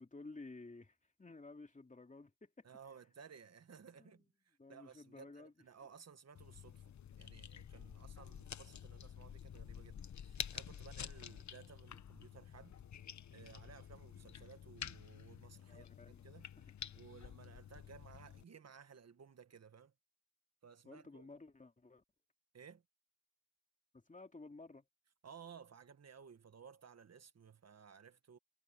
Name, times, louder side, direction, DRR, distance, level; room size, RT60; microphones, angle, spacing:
voice 1, 0.0-2.7 4.0-4.1 4.6-5.5 15.7-16.2 16.6-16.7 20.8-22.0 23.9-24.9, left 3 dB, 25° left, 2.5 m, -54 dB
voice 2, 2.6-6.8 7.1-12.8 13.3-15.9 16.2-16.5 16.9-19.9 20.6-21.3 22.5-22.8 25.2-28.4, right 6 dB, 50° right, 1.6 m, -58 dB
sound 1, 6.3-18.4, left 8 dB, 60° left, 1.1 m, -50 dB
cardioid pair, 75°, 32 cm